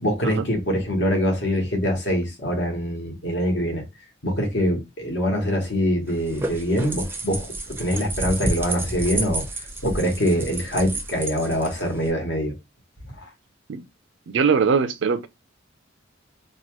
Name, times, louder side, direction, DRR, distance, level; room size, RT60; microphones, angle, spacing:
voice 1, 0.0-3.8 4.2-9.5 9.8-12.5, equal, 60° left, 1.2 m, -24 dB
sound 1, 6.1-12.1, right 2 dB, 10° right, 0.5 m, -30 dB
voice 2, 14.3-15.3, right 5 dB, 65° right, 0.4 m, -21 dB
2.9 x 2.2 x 3.0 m
head